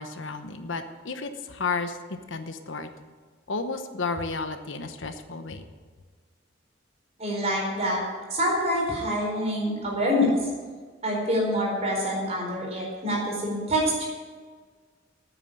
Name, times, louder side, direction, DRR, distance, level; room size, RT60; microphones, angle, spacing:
voice 1, 0.0-2.0 2.3-2.9 3.5-5.7, left 4 dB, 80° left, 8 dB, 1.0 m, -32 dB
voice 2, 7.2-8.0 8.3-10.3 11.0-14.1, equal, 35° right, -2 dB, 4.4 m, -26 dB
9.5 x 9.0 x 9.1 m, 1.5 s
head